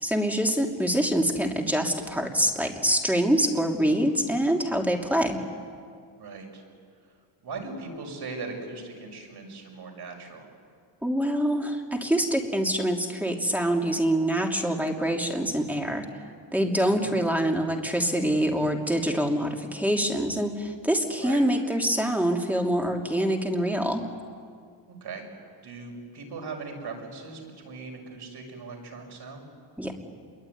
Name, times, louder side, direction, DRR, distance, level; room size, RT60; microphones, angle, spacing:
voice 1, 0.0-5.4 11.0-16.0 16.5-24.0 29.8-29.9, equal, 5° right, 1 dB, 2.8 m, -25 dB
voice 2, 6.1-6.6 7.4-10.5 16.7-17.1 21.2-21.4 24.9-25.2 25.6-29.4, right 4 dB, 60° right, 2 dB, 6.5 m, -39 dB
27.0 x 23.0 x 9.5 m, 2.1 s
cardioid pair, 120°, 44 cm